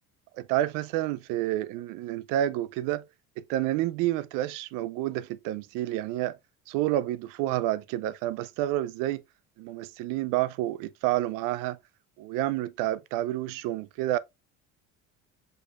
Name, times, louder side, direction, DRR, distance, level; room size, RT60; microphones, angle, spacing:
voice 1, 0.4-3.1 3.5-6.4 6.7-9.2 9.6-11.8 12.2-14.2, right 14 dB, 80° right, 0.5 m, -29 dB
5.2 x 4.2 x 2.4 m
cardioid pair, 170°, 32 cm